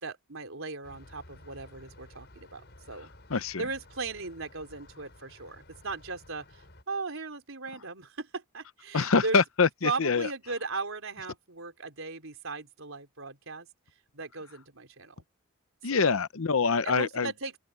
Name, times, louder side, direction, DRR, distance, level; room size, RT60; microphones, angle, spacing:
voice 1, 0.0-3.1 3.6-9.4 9.8-13.7 14.1-15.2 15.9-16.0 16.8-17.6, right 3 dB, 70° right, 4.1 m, -37 dB
sound 1, 0.8-6.8, left 1 dB, 50° left, 6.3 m, -53 dB
voice 2, 3.3-3.6 8.9-10.3 15.8-17.3, left 5 dB, 70° left, 0.8 m, -25 dB
open air
head